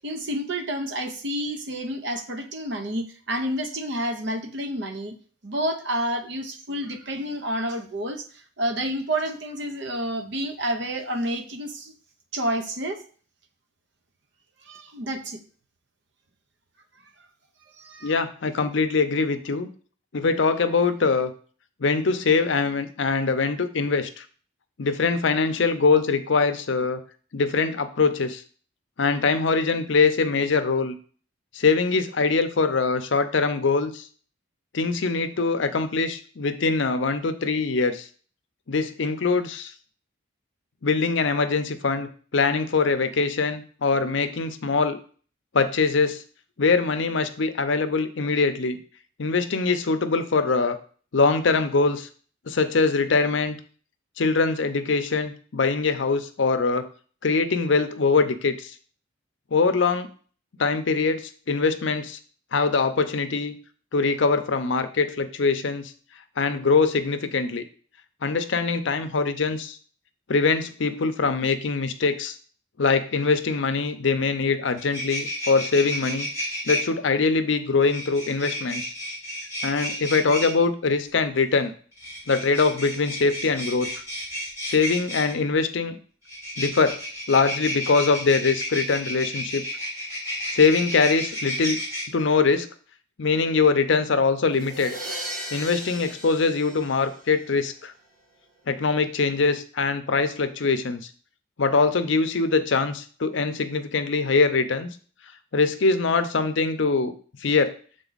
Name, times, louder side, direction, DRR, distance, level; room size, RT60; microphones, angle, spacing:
voice 1, 0.0-5.1 5.4-8.3 8.6-11.9 12.3-13.0 14.7-15.4 17.8-18.1, right 1 dB, 55° right, 7 dB, 0.8 m, -29 dB
voice 2, 18.0-19.7 20.1-21.3 21.8-24.2 24.8-27.0 27.3-28.4 29.0-31.0 31.5-34.0 34.7-38.1 38.7-39.7 40.8-45.0 45.5-46.2 46.6-48.8 49.2-50.8 51.1-52.1 52.5-53.6 54.2-56.9 57.2-58.7 59.5-60.1 60.6-62.2 62.5-63.5 63.9-65.9 66.4-67.6 68.2-69.8 70.3-72.4 72.8-76.3 76.7-78.9 79.6-81.7 82.3-84.0 84.6-86.0 86.6-87.0 87.3-89.6 90.5-91.8 92.1-92.7 93.2-94.9 95.5-97.9 98.7-101.1 101.6-104.9 105.5-107.1 107.4-107.7, left 4 dB, 65° left, 9 dB, 0.6 m, -23 dB
sound 1, 74.4-74.5 74.7-76.8 77.9-80.5 81.9-85.3 86.3-92.0, equal, 15° right, 3.4 m, -32 dB
sound 2, 94.5-97.5, equal, 40° right, 1.5 m, -36 dB
7.0 x 3.8 x 3.9 m, 0.42 s
head